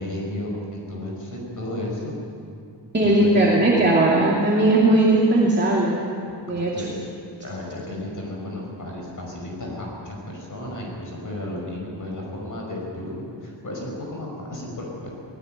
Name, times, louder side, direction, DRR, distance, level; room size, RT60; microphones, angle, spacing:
voice 1, 0.0-2.2 3.0-3.3 6.5-7.0 7.4-15.1, left 1 dB, 45° left, -1 dB, 5.5 m, -33 dB
voice 2, 2.9-6.0 6.5-6.7, right 2 dB, 25° right, -4 dB, 2.6 m, -18 dB
19.0 x 17.0 x 9.0 m, 2.5 s
wide cardioid pair, 140°, 44 cm